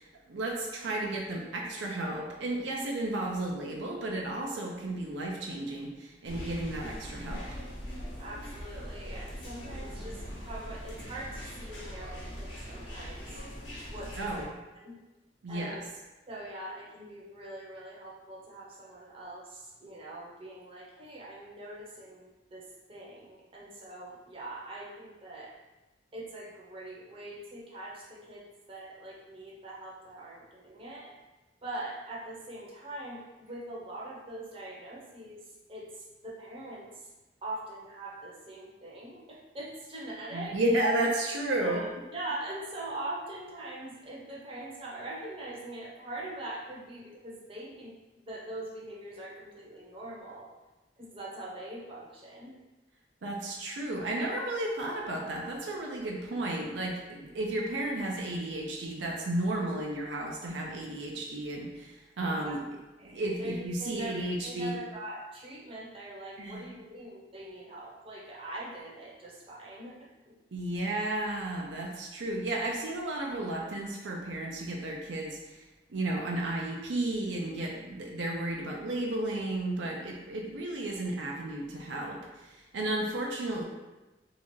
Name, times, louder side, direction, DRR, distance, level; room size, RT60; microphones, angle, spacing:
voice 1, 0.0-7.6 14.2-14.5 15.4-15.8 40.3-41.8 53.2-62.6 63.0-64.7 66.4-66.7 70.5-75.6 75.9-83.6, right 1 dB, 75° right, -1 dB, 0.5 m, -33 dB
sound 1, 6.2-14.4, equal, 75° left, 1.2 m, -41 dB
voice 2, 8.2-13.4 13.9-14.9 15.5-15.9 16.3-25.5 26.1-31.1 31.6-37.1 37.4-40.6 41.6-47.9 48.3-50.5 51.0-52.6 62.2-62.6 63.0-70.3, right 1 dB, 30° right, -5 dB, 0.8 m, -43 dB
2.9 x 2.4 x 4.3 m, 1.1 s
head